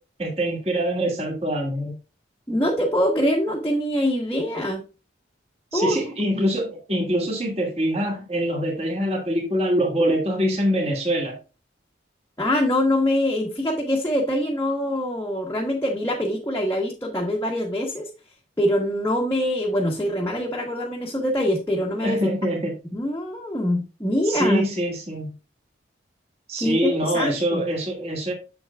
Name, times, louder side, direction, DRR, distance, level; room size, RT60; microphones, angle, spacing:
voice 1, 0.2-1.9 5.7-11.4 22.0-22.7 24.2-25.3 26.5-28.3, equal, 35° right, 0 dB, 2.4 m, -24 dB
voice 2, 2.5-4.8 5.7-6.0 12.4-18.1 18.6-22.2 22.9-24.6 26.6-27.6, left 1 dB, 15° left, -2 dB, 1.2 m, -24 dB
7.7 x 7.2 x 2.4 m, 0.31 s
head